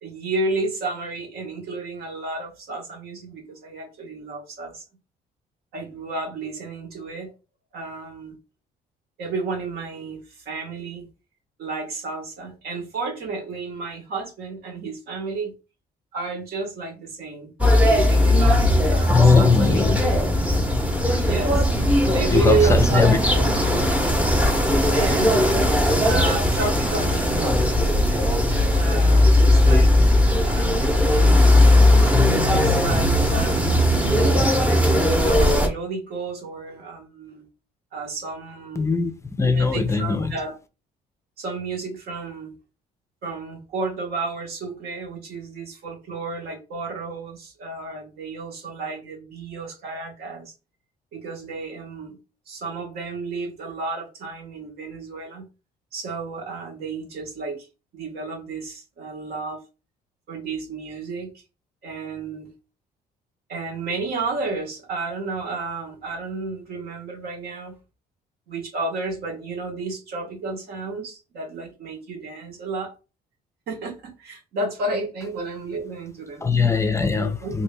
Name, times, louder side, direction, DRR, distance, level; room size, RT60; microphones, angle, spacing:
voice 1, 0.0-4.8 5.7-7.3 7.7-8.3 9.2-11.1 11.6-15.5 16.1-20.1 21.2-21.6 22.1-23.5 24.9-25.5 26.0-27.5 28.7-30.1 30.4-31.3 32.4-34.3 35.1-37.4 37.9-38.9 39.4-40.5 41.4-42.5 43.2-50.5 51.1-52.2 52.5-55.4 55.9-57.7 57.9-59.6 60.3-61.3 61.8-62.5 63.5-67.7 68.5-72.9 73.7-76.5 77.2-77.6, right 3 dB, 65° right, 1.1 m, -31 dB
sound 1, 17.6-35.7, left 1 dB, 10° right, 0.7 m, -18 dB
voice 2, 19.1-20.0 21.0-21.4 22.0-23.2 38.8-40.4 76.4-77.6, left 4 dB, 15° left, 0.4 m, -20 dB
3.2 x 2.6 x 3.3 m
cardioid pair, 110°, 17 cm